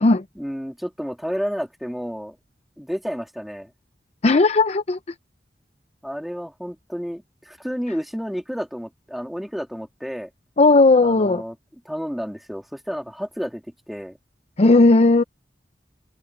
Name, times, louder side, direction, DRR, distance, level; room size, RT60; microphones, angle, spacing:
voice 1, 0.4-2.4 2.8-3.7 6.0-10.3 11.0-11.6 11.8-14.2, equal, ahead, 2.5 m, -31 dB
voice 2, 4.2-5.0 10.6-11.4 14.6-15.2, left 3 dB, 40° left, 0.6 m, -15 dB
open air
head